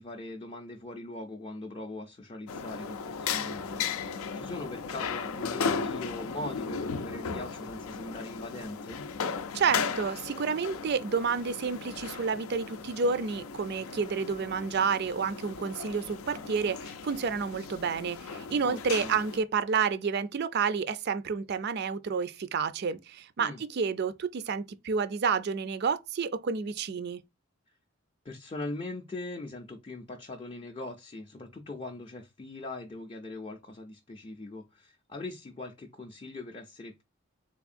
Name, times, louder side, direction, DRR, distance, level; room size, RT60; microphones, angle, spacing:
voice 1, 0.0-9.1 18.6-19.2 23.4-23.6 28.2-37.0, left 2 dB, 25° left, 0.4 m, -41 dB
sound 1, 2.5-19.4, left 5 dB, 80° left, 0.4 m, -36 dB
voice 2, 9.5-27.2, right 5 dB, 50° right, 0.4 m, -30 dB
3.5 x 3.5 x 2.5 m
head